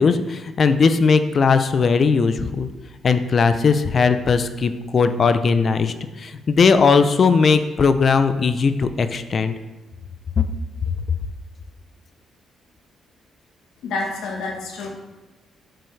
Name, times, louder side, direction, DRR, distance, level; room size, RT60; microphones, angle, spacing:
voice 1, 0.0-2.7 3.0-9.5, left 5 dB, 45° left, 10 dB, 0.5 m, -18 dB
voice 2, 13.8-14.9, left 3 dB, 80° left, 2 dB, 1.3 m, -28 dB
7.6 x 6.8 x 3.3 m, 1.1 s
cardioid pair, 90°, 0 cm